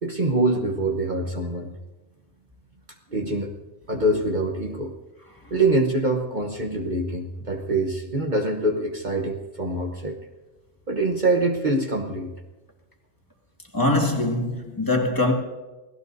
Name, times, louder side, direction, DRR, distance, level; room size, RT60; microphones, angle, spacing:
voice 1, 0.0-1.8 3.1-3.5 3.9-4.9 5.5-10.2 10.9-12.3, right 2 dB, 40° right, 1.1 m, -24 dB
voice 2, 13.7-15.3, left 2 dB, 15° left, 2.0 m, -22 dB
28.5 x 17.0 x 2.7 m
omnidirectional pair, 1.2 m